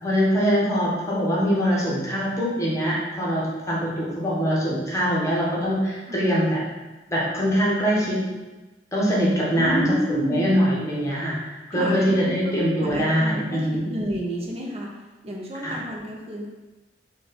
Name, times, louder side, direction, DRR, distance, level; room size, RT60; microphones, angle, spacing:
voice 1, 0.0-6.6 7.1-8.2 8.9-13.9 15.6-15.8, equal, 15° left, -6 dB, 0.9 m, -23 dB
voice 2, 9.6-10.4 11.7-12.0 12.5-14.9 15.2-16.5, equal, 35° right, -1 dB, 0.6 m, -29 dB
4.0 x 2.2 x 3.5 m, 1.2 s
head